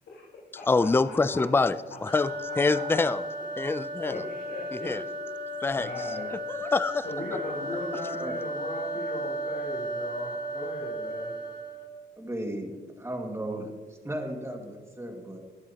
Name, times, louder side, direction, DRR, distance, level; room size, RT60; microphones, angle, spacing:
voice 1, 0.1-1.4 1.9-3.1 4.0-4.9 5.7-6.3 7.0-11.3, left 3 dB, 85° left, -7 dB, 4.3 m, -38 dB
voice 2, 0.7-1.8 2.0-2.3 2.6-3.2 3.6-4.1 4.7-5.0 5.6-5.9 6.5-7.0, left 3 dB, 10° left, 14 dB, 0.4 m, -25 dB
sound 1, 2.1-12.0, right 1 dB, 30° left, 2.1 m, -35 dB
voice 3, 12.2-15.4, right 1 dB, 15° right, 2 dB, 2.0 m, -36 dB
23.5 x 8.1 x 2.9 m, 1.5 s
cardioid pair, 90°, 19 cm